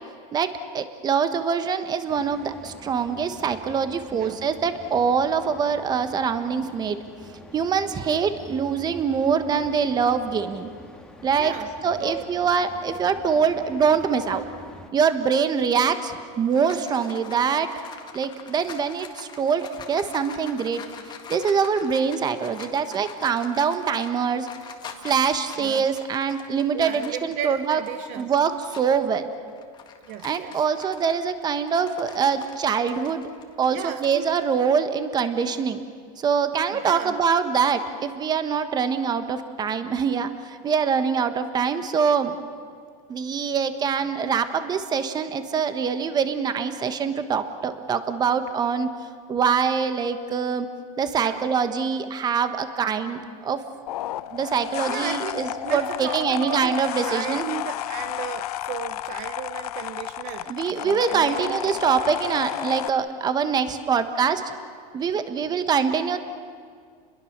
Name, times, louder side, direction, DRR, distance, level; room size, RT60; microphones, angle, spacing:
voice 1, 0.3-7.0 7.5-10.7 11.2-11.5 11.8-14.4 14.9-17.7 18.1-20.8 21.3-24.5 25.0-27.8 28.2-29.3 30.2-33.2 33.6-35.8 36.2-42.3 43.1-48.9 49.3-50.7 51.0-53.6 54.3-57.4 60.5-64.4 64.9-66.2, right 6 dB, 20° right, 10 dB, 1.4 m, -24 dB
sound 1, 2.1-14.9, left 1 dB, 5° left, 1.8 m, -46 dB
voice 2, 11.4-11.7 12.0-12.3 25.6-25.9 26.7-28.3 30.1-30.6 33.7-34.3 36.7-37.1 51.2-51.5 54.9-56.7 57.0-60.5 60.8-61.6, right 10 dB, 45° right, 9 dB, 0.9 m, -35 dB
sound 2, 16.1-29.0 29.5-34.4, left 6 dB, 20° left, 1.8 m, -44 dB
sound 3, 53.9-62.9, left 13 dB, 90° left, 0.8 m, -32 dB
30.0 x 21.5 x 6.7 m, 2.1 s
supercardioid pair, 150°, 19 cm